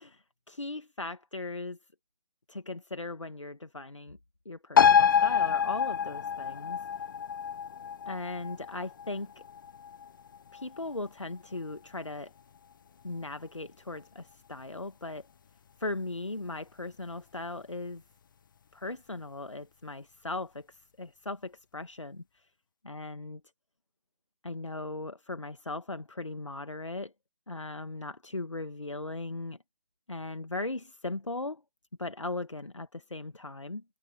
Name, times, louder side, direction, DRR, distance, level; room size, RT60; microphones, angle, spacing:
voice 1, 0.0-1.8 2.5-4.2 4.4-6.8 8.0-9.3 10.5-12.3 13.0-15.3 15.8-18.0 18.7-22.4 22.8-23.4 24.4-27.1 27.5-29.6 30.1-31.6 32.0-33.8, left 2 dB, 85° left, 1.4 m, -38 dB
sound 1, 4.8-11.7 12.1-12.2, left 7 dB, 45° left, 0.7 m, -27 dB
figure-of-eight pair, 145°, 15 cm